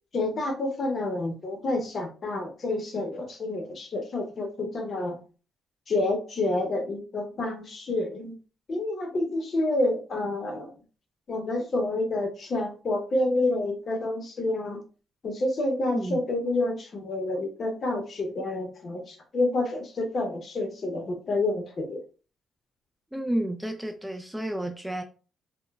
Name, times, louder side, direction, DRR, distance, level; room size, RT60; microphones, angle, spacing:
voice 1, 0.1-5.2 5.9-8.3 8.7-10.7 11.3-14.8 15.2-22.0, left 2 dB, 45° left, 4 dB, 0.7 m, -28 dB
voice 2, 15.9-16.2 23.1-25.0, right 1 dB, 5° right, 4 dB, 0.3 m, -31 dB
2.9 x 2.1 x 2.3 m, 0.36 s
cardioid pair, 90°, 0 cm